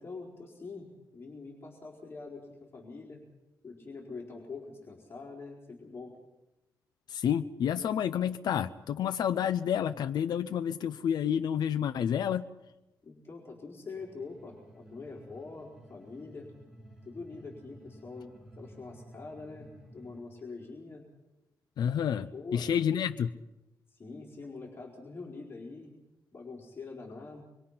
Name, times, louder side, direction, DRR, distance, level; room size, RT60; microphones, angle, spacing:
voice 1, 0.0-3.2 3.6-6.1 13.0-16.5 17.0-21.0 22.3-22.7 23.9-25.9 26.3-27.4, left 4 dB, 35° left, -2 dB, 4.6 m, -44 dB
voice 2, 7.1-12.4 21.8-23.3, left 9 dB, 75° left, 9 dB, 0.7 m, -29 dB
sound 1, 14.0-20.2, right 1 dB, 5° right, 6.2 m, -54 dB
26.0 x 23.5 x 5.8 m, 0.97 s
cardioid pair, 120°, 7 cm